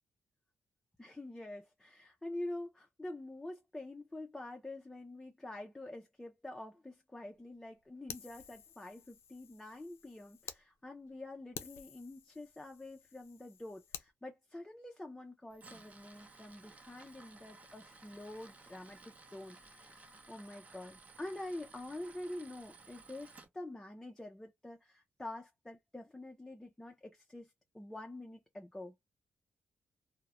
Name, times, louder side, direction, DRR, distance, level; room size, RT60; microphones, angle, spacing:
voice 1, 1.0-29.0, left 1 dB, 10° left, 0.4 m, -47 dB
Fire, 8.1-10.6 11.1-11.2 11.5-14.1, left 8 dB, 80° left, 0.5 m, -50 dB
Tools, 15.5-23.5, right 3 dB, 35° right, 0.6 m, -57 dB
2.3 x 2.1 x 2.9 m
cardioid pair, 110°, 4 cm